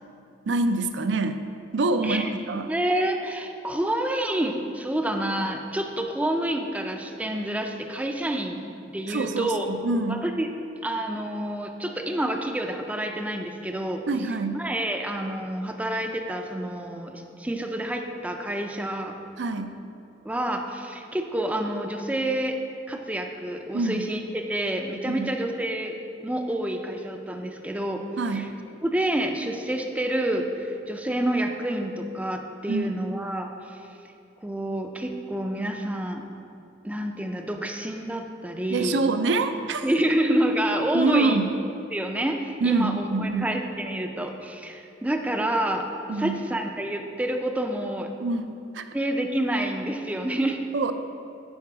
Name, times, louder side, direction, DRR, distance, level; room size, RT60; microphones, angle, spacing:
voice 1, 0.5-1.4 1.7-2.7 9.1-10.2 14.1-14.6 19.4-19.7 23.7-24.1 25.1-25.3 28.2-28.5 32.7-33.0 38.7-39.8 40.9-41.5 42.6-43.5 46.1-46.4 48.2-48.8 50.7-50.9, right 3 dB, 70° right, 9 dB, 0.5 m, -25 dB
voice 2, 2.7-9.7 10.1-10.5 10.8-14.0 14.5-19.1 20.2-22.6 22.9-26.0 26.2-28.0 28.3-28.5 28.8-33.8 34.4-36.2 36.8-39.0 39.8-41.5 41.9-48.1 48.9-50.6, right 1 dB, 10° right, 4 dB, 0.4 m, -28 dB
10.5 x 4.7 x 4.7 m, 2.7 s
head